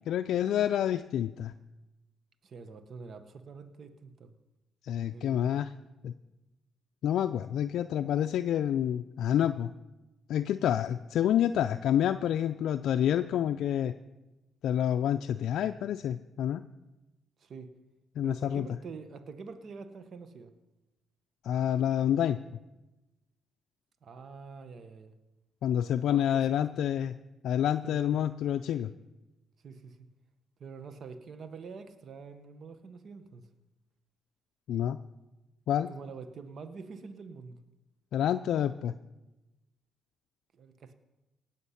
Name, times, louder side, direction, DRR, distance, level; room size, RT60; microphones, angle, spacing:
voice 1, 0.1-1.5 4.8-5.7 6.0-6.1 7.0-9.7 10.3-13.9 14.6-16.6 18.2-18.7 21.4-22.4 25.6-27.2 27.4-28.9 34.7-35.0 35.7-35.9 38.1-38.9, left 10 dB, 75° left, 9 dB, 0.4 m, -28 dB
voice 2, 2.4-4.3 5.1-5.5 17.4-17.7 18.2-20.5 24.0-25.1 26.0-26.5 27.8-28.2 29.6-30.1 30.6-33.5 35.9-37.6 40.5-40.9, right 5 dB, 55° right, 10 dB, 1.1 m, -46 dB
18.0 x 7.1 x 5.7 m, 1.1 s
cardioid pair, 90°, 0 cm